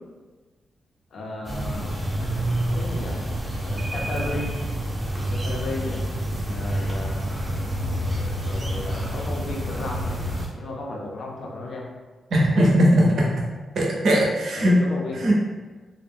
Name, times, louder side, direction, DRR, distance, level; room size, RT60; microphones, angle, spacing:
voice 1, 1.1-1.9 2.7-3.2 3.6-4.5 5.3-6.0 6.4-7.2 8.4-10.3 10.5-11.9 14.5-15.3, left 2 dB, 60° left, -1 dB, 0.5 m, -34 dB
sound 1, 1.4-10.5, right 1 dB, 20° right, 0.6 m, -28 dB
voice 2, 12.3-13.3 13.7-14.8 15.1-15.3, equal, 60° right, -2 dB, 0.6 m, -19 dB
2.5 x 2.1 x 3.4 m, 1.3 s
wide cardioid pair, 165°, 0 cm